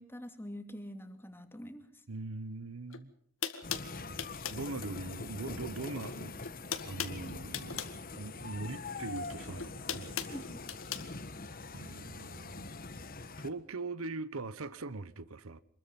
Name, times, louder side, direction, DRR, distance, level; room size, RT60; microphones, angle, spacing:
voice 1, 0.0-1.9 10.3-10.6, equal, 10° left, 2.6 m, -45 dB
voice 2, 2.1-3.1 4.5-6.5 6.8-7.9 8.1-10.4 11.7-12.7 13.4-15.6, right 3 dB, 80° right, 1.1 m, -41 dB
sound 1, 2.9-3.0 3.4-4.7 5.8-6.2 6.4-8.0 9.1-11.1, left 8 dB, 70° left, 2.1 m, -38 dB
sound 2, 3.6-13.5, left 3 dB, 45° left, 1.5 m, -43 dB
26.5 x 21.5 x 5.5 m
head